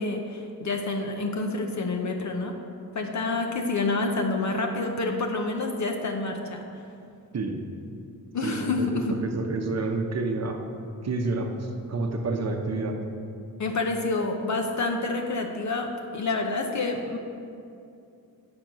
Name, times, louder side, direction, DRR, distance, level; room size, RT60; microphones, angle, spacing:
voice 1, 0.0-2.5 2.9-6.6 8.3-9.1 13.6-17.2, left 3 dB, 50° left, 3 dB, 0.7 m, -28 dB
voice 2, 8.4-10.6 11.0-13.0, right 3 dB, 40° right, 4 dB, 0.8 m, -29 dB
8.7 x 5.2 x 6.0 m, 2.5 s
wide cardioid pair, 165°, 38 cm